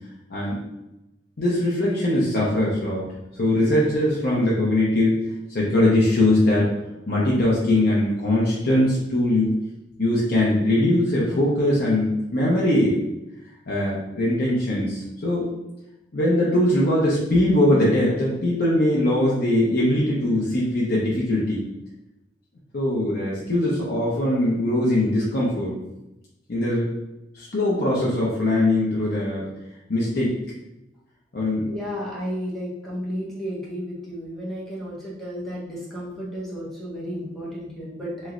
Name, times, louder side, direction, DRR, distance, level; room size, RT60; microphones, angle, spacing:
voice 1, 1.4-3.0 3.4-5.2 5.5-6.7 7.1-9.5 10.0-13.0 13.7-15.5 16.1-21.6 22.7-25.8 26.5-26.9 27.3-29.4 29.9-30.3 31.3-31.7, left 1 dB, 55° left, -5 dB, 0.7 m, -21 dB
voice 2, 31.7-38.3, equal, ahead, -7 dB, 0.9 m, -33 dB
3.1 x 3.0 x 2.4 m, 0.94 s
head